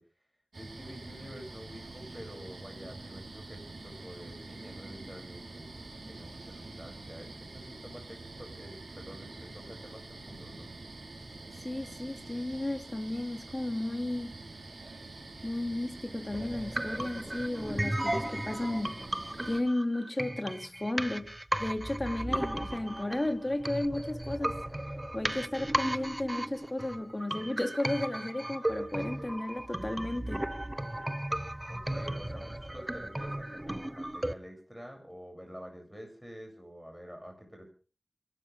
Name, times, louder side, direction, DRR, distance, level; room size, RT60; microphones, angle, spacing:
voice 1, 0.5-5.7 6.1-10.7 31.7-37.7, equal, ahead, 7.6 m, -48 dB
sound 1, 0.5-19.6, right 2 dB, 85° right, 4.2 m, -46 dB
voice 2, 11.6-14.3 15.4-19.0 19.5-21.3 21.6-24.6 25.1-30.4, left 1 dB, 30° left, 2.4 m, -34 dB
sound 2, 16.3-34.3, right 1 dB, 20° right, 0.8 m, -35 dB
27.0 x 12.5 x 3.6 m
wide cardioid pair, 65°, 0 cm